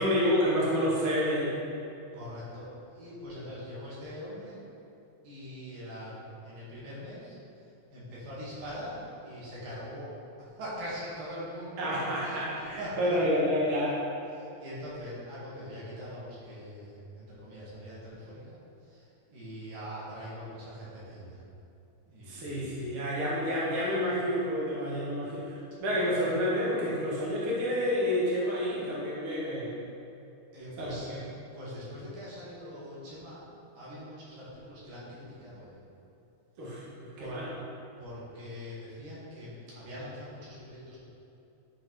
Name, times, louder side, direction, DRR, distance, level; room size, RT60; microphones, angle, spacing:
voice 1, 0.0-1.6 11.8-13.9 22.3-29.7 30.8-31.2 36.6-37.5, equal, 40° right, -7 dB, 2.1 m, -29 dB
voice 2, 2.1-4.6 5.2-7.4 7.9-13.2 13.9-14.0 14.3-21.4 22.1-22.6 30.5-31.3 31.5-33.4 33.8-35.8 36.6-36.7 37.2-37.4 38.0-41.0, equal, 65° right, -8 dB, 3.9 m, -42 dB
12.0 x 4.6 x 4.7 m, 2.8 s
omnidirectional pair, 4.3 m